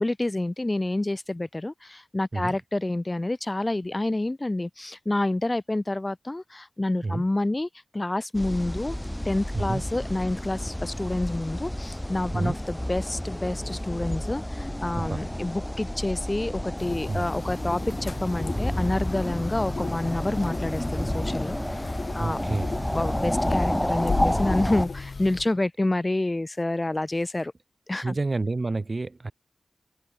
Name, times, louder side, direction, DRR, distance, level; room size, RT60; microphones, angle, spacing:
voice 1, 0.0-7.7 7.9-9.0 9.2-22.4 22.8-27.5 27.9-28.2, left 2 dB, 25° left, 6.0 m, -28 dB
sound 1, 8.3-24.9, left 1 dB, 10° left, 3.3 m, -30 dB
sound 2, 16.8-25.5, left 4 dB, 65° left, 3.6 m, -35 dB
voice 2, 22.1-22.7 28.0-29.3, right 3 dB, 45° right, 7.4 m, -29 dB
wide cardioid pair, 70°, 0 cm